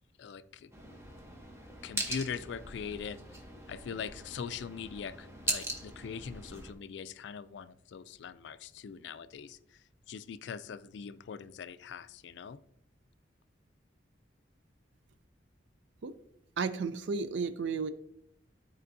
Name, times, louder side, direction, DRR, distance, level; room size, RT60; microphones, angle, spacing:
voice 1, 0.2-0.7 1.8-3.2 3.7-9.6 10.1-12.6, left 6 dB, 70° left, 14 dB, 0.3 m, -41 dB
sound 1, 0.7-6.7, right 1 dB, 15° right, 0.8 m, -40 dB
voice 2, 16.6-17.9, right 5 dB, 75° right, 12 dB, 0.4 m, -33 dB
12.5 x 4.3 x 2.6 m, 0.72 s
head